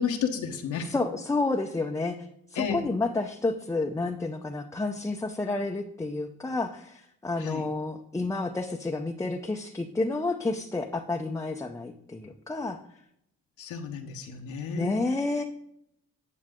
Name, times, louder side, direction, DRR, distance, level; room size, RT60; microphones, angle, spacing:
voice 1, 0.0-0.9 2.5-2.9 7.4-7.6 13.6-15.0, left 7 dB, 80° left, 2 dB, 1.1 m, -32 dB
voice 2, 0.9-2.2 2.5-12.8 14.7-15.4, left 3 dB, 10° left, 3 dB, 0.6 m, -30 dB
9.7 x 6.4 x 3.7 m, 0.75 s
cardioid pair, 90°, 30 cm